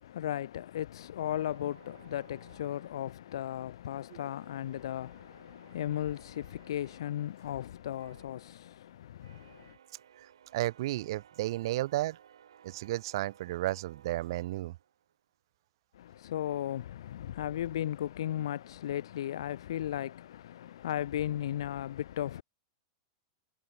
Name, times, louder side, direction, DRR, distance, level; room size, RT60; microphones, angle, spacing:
voice 1, 0.0-9.8 15.9-22.4, left 11 dB, 80° left, 0.6 m, -36 dB
sound 1, 1.2-3.7 4.1-15.3, right 9 dB, 85° right, 5.4 m, -60 dB
voice 2, 10.2-12.2 12.6-14.8, right 16 dB, 65° right, 0.7 m, -33 dB
hypercardioid pair, 115°, 3 cm